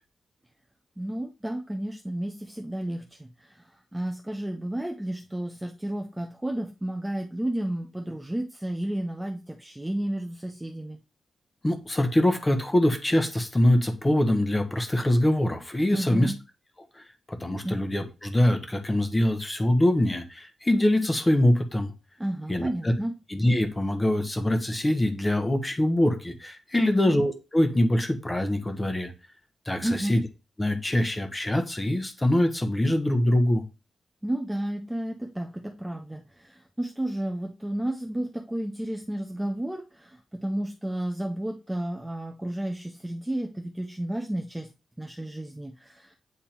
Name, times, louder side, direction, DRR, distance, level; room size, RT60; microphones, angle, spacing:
voice 1, 1.0-11.0 15.9-16.4 17.6-17.8 22.2-23.1 26.8-27.2 29.8-30.2 34.2-44.7 45.0-46.2, right 1 dB, 5° right, 2 dB, 0.6 m, -32 dB
voice 2, 11.6-16.3 16.9-17.0 17.3-21.9 22.5-22.9 23.3-29.1 29.7-30.2 30.6-33.6, left 1 dB, 15° left, 6 dB, 1.1 m, -24 dB
8.6 x 3.6 x 4.4 m, 0.30 s
wide cardioid pair, 150°, 0 cm